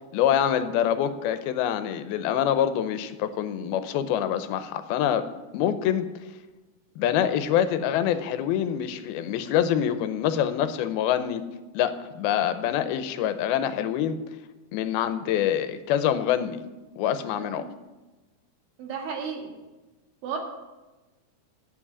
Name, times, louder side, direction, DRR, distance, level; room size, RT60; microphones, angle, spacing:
voice 1, 0.1-5.2 5.5-6.1 7.0-11.4 11.7-14.2 14.7-16.6 17.0-17.7, left 10 dB, 90° left, 11 dB, 2.6 m, -25 dB
voice 2, 17.4-17.7 18.8-19.5 20.2-20.4, right 6 dB, 70° right, 1 dB, 3.5 m, -34 dB
9.6 x 7.4 x 8.6 m, 1.1 s
omnidirectional pair, 4.3 m